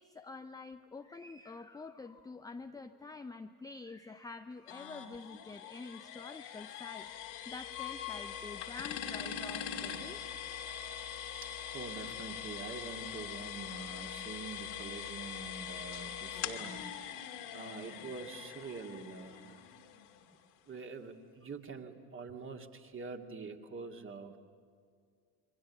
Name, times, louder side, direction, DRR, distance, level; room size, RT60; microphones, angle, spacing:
voice 1, 0.0-7.1 7.5-10.4 10.7-11.0, left 3 dB, 10° left, 7 dB, 0.6 m, -47 dB
sound 1, 4.7-20.4, left 9 dB, 60° left, 2.1 m, -43 dB
voice 2, 11.4-16.8 17.5-19.6 20.7-24.4, right 4 dB, 25° right, 4 dB, 2.2 m, -45 dB
28.5 x 23.5 x 7.3 m, 2.2 s
figure-of-eight pair, 60°, 46 cm